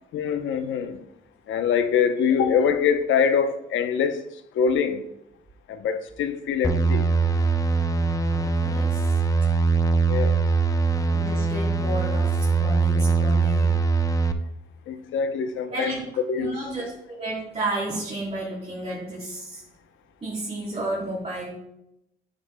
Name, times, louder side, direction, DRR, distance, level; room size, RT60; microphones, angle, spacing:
voice 1, 0.1-1.0 1.5-4.3 4.5-5.0 5.7-7.1 10.1-10.4 14.9-15.9 16.3-16.6, left 7 dB, 75° left, 0.8 m, -24 dB
sound 1, 6.6-14.3, right 4 dB, 15° left, 0.7 m, -22 dB
voice 2, 8.6-9.1 11.1-13.8 15.7-16.0 16.4-19.6 20.2-21.5, right 1 dB, 30° right, 3.5 m, -32 dB
10.0 x 9.9 x 2.2 m
cardioid pair, 90°, 20 cm